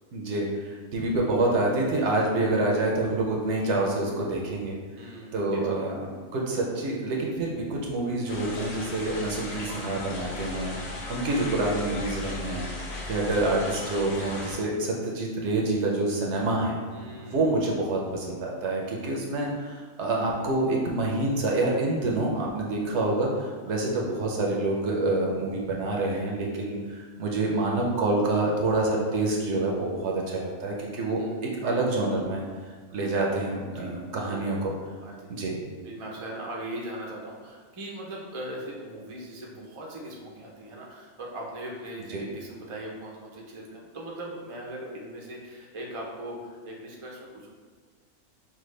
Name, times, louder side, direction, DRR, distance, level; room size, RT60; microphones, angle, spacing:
voice 1, 0.1-4.8 5.3-6.1 6.3-12.7 13.1-16.8 17.2-32.4 32.9-34.7 35.3-35.6 42.1-42.2, right 2 dB, 60° right, -1 dB, 0.8 m, -27 dB
voice 2, 5.0-5.9 16.9-17.6 31.2-31.8 33.7-33.9 34.2-34.7 35.0-35.3 35.8-47.5, right 1 dB, 40° right, -2 dB, 0.4 m, -40 dB
sound 1, 8.3-14.6, left 2 dB, 75° left, 1.5 m, -37 dB
5.8 x 2.2 x 3.2 m, 1.5 s
omnidirectional pair, 1.5 m